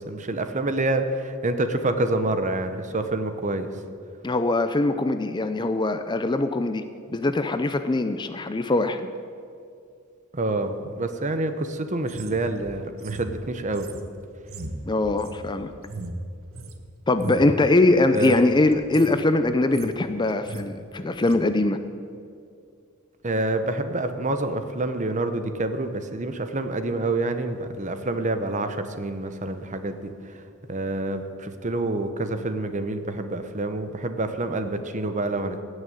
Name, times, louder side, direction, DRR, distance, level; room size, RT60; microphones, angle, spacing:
voice 1, 0.0-3.7 10.3-13.9 18.1-18.3 23.2-30.4 30.7-35.6, right 2 dB, 35° right, 8 dB, 0.9 m, -27 dB
voice 2, 4.2-6.8 7.1-9.1 14.8-15.7 17.1-21.8, left 2 dB, 20° left, 9 dB, 0.5 m, -22 dB
sound 1, 12.0-16.8 17.1-17.5 18.0-18.4 18.7-19.2 19.5-20.0 20.3-20.7 21.2-21.4, right 2 dB, 70° right, 1.0 m, -37 dB
17.0 x 6.5 x 9.2 m, 2.4 s
head